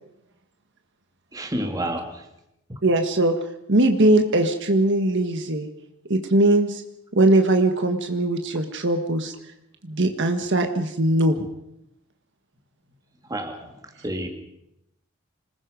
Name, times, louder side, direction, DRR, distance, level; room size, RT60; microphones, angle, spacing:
voice 1, 1.3-2.3 2.7-2.8 13.3-14.3, right 1 dB, 15° right, 4 dB, 2.3 m, -30 dB
voice 2, 2.8-3.3 3.7-5.7 6.1-6.8 7.1-9.3 9.8-11.5, right 1 dB, 55° right, 5 dB, 1.5 m, -20 dB
26.5 x 20.0 x 5.2 m, 0.83 s
head